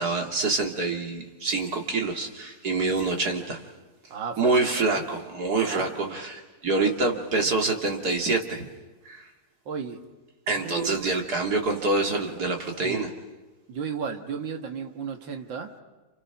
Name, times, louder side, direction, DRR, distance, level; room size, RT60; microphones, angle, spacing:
voice 1, 0.0-3.6 4.4-8.7 9.1-9.3 10.5-13.1, right 3 dB, 55° right, 3 dB, 3.0 m, -26 dB
voice 2, 4.1-5.0 5.6-6.2 9.7-10.1 10.5-11.1 12.8-13.2 13.7-15.7, right 5 dB, 90° right, 6 dB, 2.3 m, -34 dB
30.0 x 29.0 x 5.9 m, 1.2 s
omnidirectional pair, 2.0 m